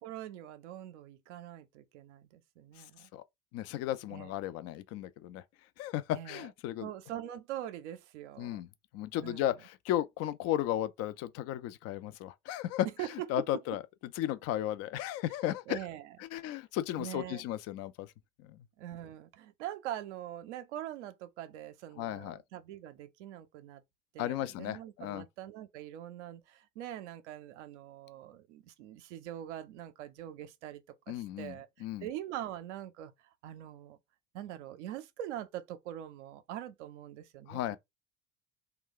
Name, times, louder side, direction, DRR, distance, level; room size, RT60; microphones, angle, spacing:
voice 1, 0.0-3.1 4.1-4.3 6.1-6.5 6.8-8.6 9.2-9.6 13.0-13.6 15.7-16.2 16.9-17.4 18.8-23.8 24.1-33.1 33.4-34.0 34.3-37.8, right 12 dB, 65° right, 0.6 m, -43 dB
voice 2, 3.5-5.4 5.8-6.9 8.4-8.7 8.9-12.9 13.3-13.8 14.2-15.8 16.3-18.1 18.4-18.6 22.0-22.4 24.2-25.2 31.1-32.1 37.5-37.8, left 13 dB, 40° left, 0.4 m, -35 dB
2.3 x 2.2 x 3.7 m
hypercardioid pair, 70°, 38 cm